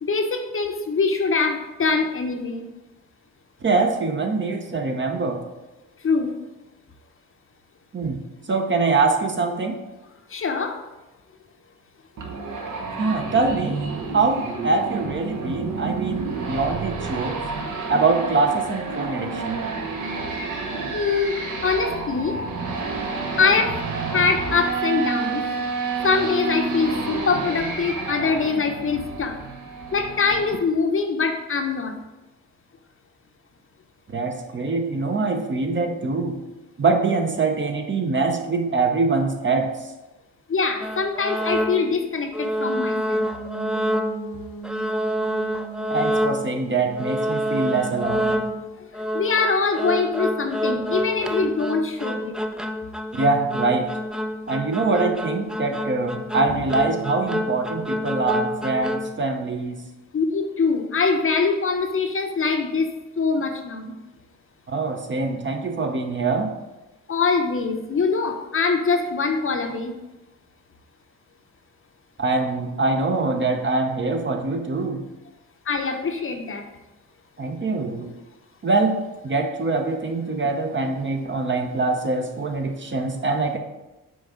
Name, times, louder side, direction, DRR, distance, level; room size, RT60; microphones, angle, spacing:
voice 1, 0.0-2.6 6.0-6.3 10.3-10.8 20.9-21.4 21.6-22.4 23.4-23.8 24.1-25.4 26.0-29.4 29.9-32.0 40.5-43.3 48.8-48.9 49.1-52.3 56.5-56.6 60.1-62.9 63.2-63.9 67.1-69.9 75.7-76.7, left 4 dB, 40° left, 5 dB, 0.7 m, -23 dB
voice 2, 3.6-5.4 7.9-8.2 8.5-9.8 13.0-13.8 14.1-17.4 17.9-19.6 34.1-36.4 36.8-39.9 45.9-48.4 53.1-53.9 54.5-59.8 64.7-66.5 72.2-75.0 77.4-78.1 78.6-83.6, right 3 dB, 35° right, 4 dB, 0.8 m, -24 dB
sound 1, 12.2-30.6, right 4 dB, 60° right, 1.1 m, -30 dB
sound 2, 40.8-42.0 42.3-44.4 44.6-46.6 47.0-59.2, equal, ahead, 0.3 m, -27 dB
sound 3, 42.5-48.5, right 5 dB, 80° left, 1.0 m, -38 dB
6.2 x 4.1 x 3.6 m, 1.0 s
supercardioid pair, 65°, 35 cm